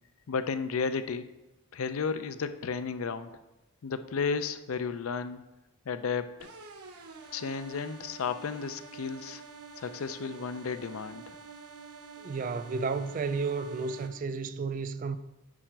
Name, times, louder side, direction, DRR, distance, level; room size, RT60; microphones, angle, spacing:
voice 1, 0.3-1.3 1.7-3.3 3.8-5.4 5.9-6.3 7.3-9.4 9.8-11.4, left 5 dB, 70° left, 0.5 m, -33 dB
sound 1, 6.4-14.1, right 5 dB, 90° right, 1.0 m, -48 dB
voice 2, 12.2-15.2, right 4 dB, 40° right, 0.3 m, -32 dB
8.8 x 4.9 x 4.6 m
head